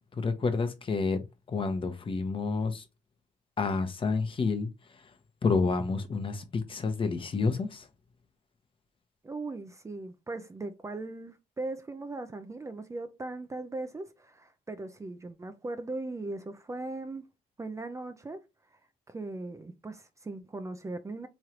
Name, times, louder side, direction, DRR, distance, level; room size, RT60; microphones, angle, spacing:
voice 1, 0.2-2.8 3.6-4.7 5.4-7.8, left 4 dB, 35° left, 0.8 m, -29 dB
voice 2, 9.2-17.3 17.6-18.4 19.1-21.3, right 2 dB, 20° right, 0.5 m, -39 dB
3.7 x 3.1 x 2.9 m
cardioid pair, 95°, 15 cm